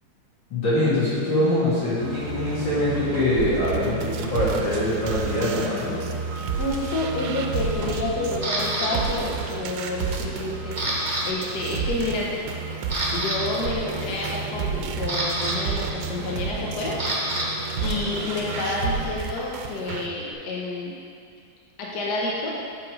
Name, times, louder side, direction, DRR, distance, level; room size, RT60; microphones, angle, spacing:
voice 1, 0.5-6.0, left 1 dB, 85° left, -9 dB, 3.1 m, -23 dB
sound 1, 2.0-19.1, right 3 dB, 50° right, 1.1 m, -33 dB
sound 2, 3.4-20.1, right 6 dB, 85° right, 1.3 m, -33 dB
voice 2, 6.6-12.3 13.1-17.5 17.8-20.9 21.8-22.5, left 2 dB, 65° left, -3 dB, 1.4 m, -29 dB
Camera, 8.4-8.9 9.5-9.8 10.2-11.2 11.5-11.7 12.3-12.4 12.7-13.4 14.6-17.5 17.7-20.3, right 1 dB, 25° right, 1.1 m, -29 dB
7.1 x 5.3 x 5.2 m, 2.2 s
omnidirectional pair, 2.0 m